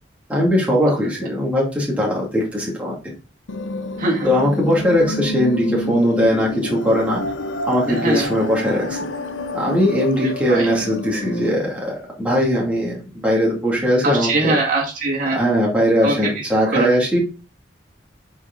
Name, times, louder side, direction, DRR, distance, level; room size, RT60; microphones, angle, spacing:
voice 1, 0.3-3.0 4.2-7.2 7.6-9.0 9.5-14.6 15.3-17.2, equal, 5° right, -4 dB, 2.4 m, -19 dB
sound 1, 3.5-11.5, left 2 dB, 85° left, 0.7 m, -29 dB
voice 2, 4.0-4.3 7.9-8.3 10.2-10.7 14.0-15.4 16.0-16.5 16.7-16.9, right 2 dB, 45° right, -2 dB, 2.1 m, -22 dB
8.5 x 4.7 x 3.9 m, 0.33 s
head